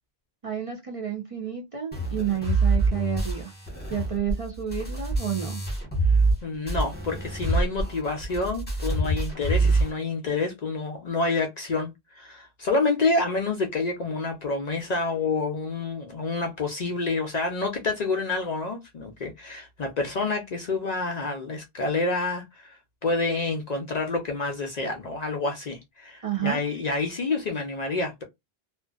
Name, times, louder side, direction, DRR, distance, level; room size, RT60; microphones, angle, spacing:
voice 1, 0.4-3.5 3.9-5.6 26.2-26.6, right 9 dB, 45° right, 0.5 m, -30 dB
sound 1, 1.9-6.4 6.7-9.9, right 3 dB, 10° left, 0.9 m, -25 dB
voice 2, 6.1-22.8 23.0-28.2, left 3 dB, 55° left, 0.5 m, -28 dB
2.5 x 2.4 x 2.3 m
omnidirectional pair, 1.1 m